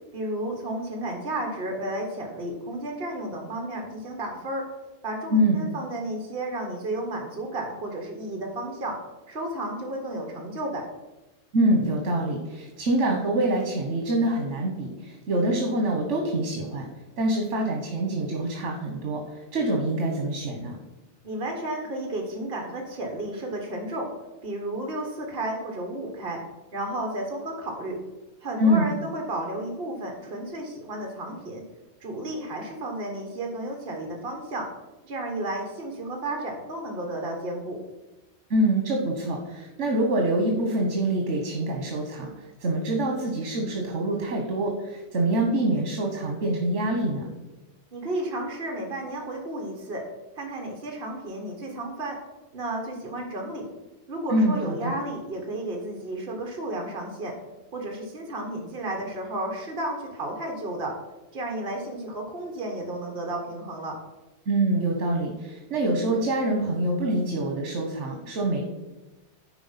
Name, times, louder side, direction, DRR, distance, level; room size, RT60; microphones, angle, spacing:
voice 1, 0.1-4.7 5.0-9.0 9.3-10.8 21.2-24.1 24.4-26.4 26.7-28.0 28.4-31.6 32.0-34.7 35.0-37.8 47.9-50.0 50.3-52.2 52.5-53.6 54.1-57.3 57.7-60.9 61.3-64.0, right 1 dB, 55° right, 1 dB, 1.4 m, -32 dB
voice 2, 5.3-5.6 11.5-16.9 17.2-20.8 28.6-28.9 38.5-42.3 42.6-47.2 54.3-54.9 64.5-68.6, right 1 dB, 80° right, 1 dB, 1.4 m, -25 dB
9.8 x 4.4 x 5.7 m, 1.1 s
omnidirectional pair, 1.2 m